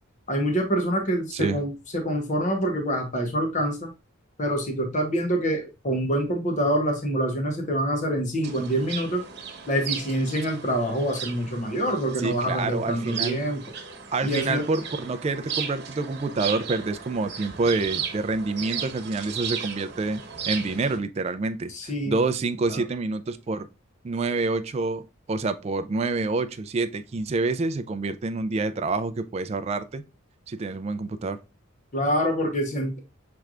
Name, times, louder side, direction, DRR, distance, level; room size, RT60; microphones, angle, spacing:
voice 1, 0.3-3.9 4.4-9.2 9.7-13.6 14.2-14.7 21.7-22.2 22.7-22.8 31.9-33.0, equal, 35° left, 0.9 m, -26 dB
voice 2, 1.3-1.6 12.2-13.4 14.1-20.2 20.5-23.7 24.0-30.0 30.5-31.4, right 3 dB, 30° right, 0.3 m, -27 dB
sound 1, 8.4-21.0, right 7 dB, 55° right, 1.0 m, -35 dB
6.0 x 3.3 x 2.3 m
head